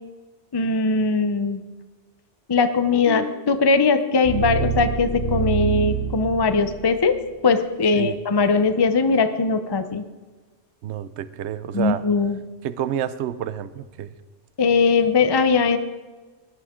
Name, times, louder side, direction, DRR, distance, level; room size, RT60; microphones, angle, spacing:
voice 1, 0.5-1.6 2.5-7.2 7.4-10.0 11.7-12.4 14.6-15.8, left 4 dB, 30° left, 9 dB, 0.5 m, -20 dB
sound 1, 3.1-7.1, right 5 dB, 50° left, 4.3 m, -27 dB
voice 2, 10.8-12.0 12.6-14.1, right 10 dB, 70° right, 14 dB, 0.9 m, -29 dB
18.0 x 11.0 x 3.7 m, 1.3 s
omnidirectional pair, 1.3 m